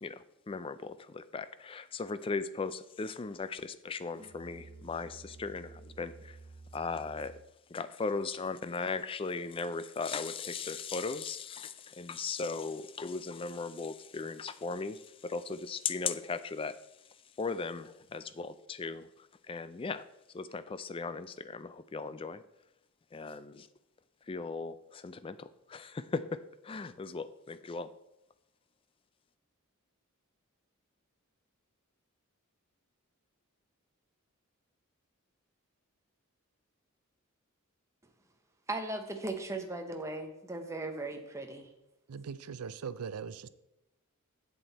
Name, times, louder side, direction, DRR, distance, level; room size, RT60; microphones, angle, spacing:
voice 1, 0.0-6.4 6.7-7.4 7.7-16.8 17.4-20.0 20.3-22.4 23.1-23.7 24.3-27.9, left 4 dB, 25° left, 0.3 m, -37 dB
Musical instrument, 4.1-7.7, right 3 dB, 35° right, 0.5 m, -52 dB
voice 2, 38.7-41.7, right 2 dB, 15° right, 0.9 m, -38 dB
voice 3, 42.1-43.5, right 6 dB, 90° right, 0.5 m, -40 dB
8.0 x 7.6 x 4.1 m
head